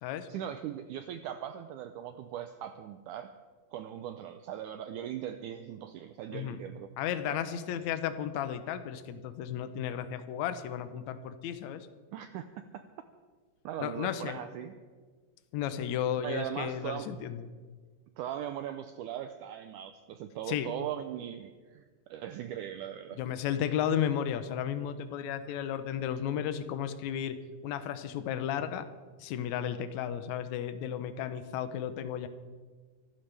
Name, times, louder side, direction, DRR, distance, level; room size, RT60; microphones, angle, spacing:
voice 1, 0.3-3.3 3.7-6.9 7.3-7.4 12.1-12.5 12.7-12.8 13.6-14.7 16.2-17.1 18.2-23.2, right 10 dB, 90° right, 8 dB, 1.8 m, -39 dB
voice 2, 7.0-11.9 13.8-14.4 15.5-17.4 20.5-20.7 23.2-27.4 27.6-28.9 29.2-32.3, left 9 dB, 80° left, 10 dB, 1.7 m, -33 dB
25.0 x 13.0 x 3.4 m, 1.5 s
omnidirectional pair, 4.3 m